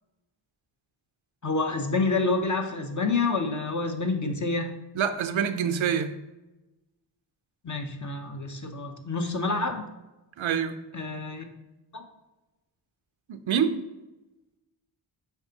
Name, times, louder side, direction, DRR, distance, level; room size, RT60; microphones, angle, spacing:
voice 1, 1.4-4.7 7.6-9.9 10.9-11.4 11.9-12.0, left 3 dB, 40° left, 4 dB, 1.0 m, -28 dB
voice 2, 5.0-6.1 10.4-10.8 13.3-13.7, right 7 dB, 85° right, 9 dB, 0.7 m, -26 dB
7.1 x 5.1 x 2.9 m, 1.0 s
wide cardioid pair, 85°, 46 cm